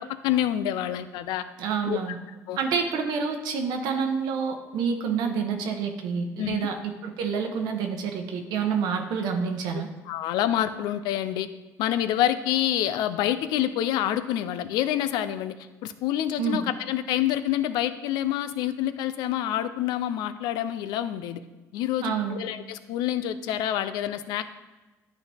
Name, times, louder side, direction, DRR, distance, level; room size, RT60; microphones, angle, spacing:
voice 1, 0.2-1.4 1.9-2.0 2.5-2.6 6.4-6.7 10.1-11.5 11.8-15.5 15.8-21.4 21.7-24.4, left 12 dB, 80° left, 12 dB, 0.4 m, -27 dB
voice 2, 1.6-2.2 2.6-9.9 16.4-16.6 22.0-22.4, right 6 dB, 80° right, 3 dB, 0.9 m, -28 dB
10.5 x 4.1 x 3.4 m, 1.2 s
cardioid pair, 90°, 7 cm